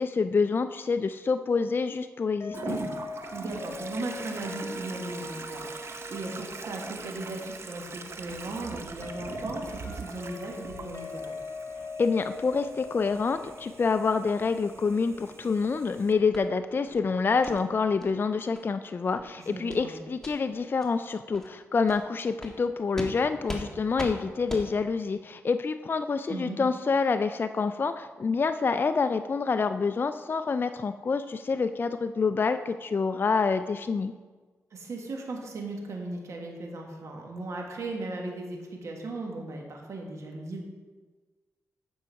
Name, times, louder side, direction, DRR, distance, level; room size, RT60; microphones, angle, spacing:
voice 1, 0.0-2.8 12.0-34.1, left 4 dB, 40° left, 9 dB, 0.4 m, -27 dB
sound 1, 2.4-15.3, left 3 dB, 60° left, 1.4 m, -42 dB
Toilet flush, 2.5-16.1, right 4 dB, 55° right, 0.7 m, -42 dB
voice 2, 3.3-11.3 19.4-20.0 26.3-26.6 34.7-40.6, right 2 dB, 70° right, 1 dB, 1.6 m, -37 dB
sound 2, 16.3-16.4 16.9-17.0 17.4-17.6 18.0-18.1 18.5-18.6 19.0-19.2 19.7-19.8 20.2-20.3 20.8-20.9 21.3-21.5 21.9-22.0 22.4-22.5 22.9-23.1 23.5-23.6 24.0-24.1 24.5-24.6, left 1 dB, 10° left, 1.5 m, -38 dB
8.5 x 6.2 x 4.7 m, 1.4 s
cardioid pair, 65°, 5 cm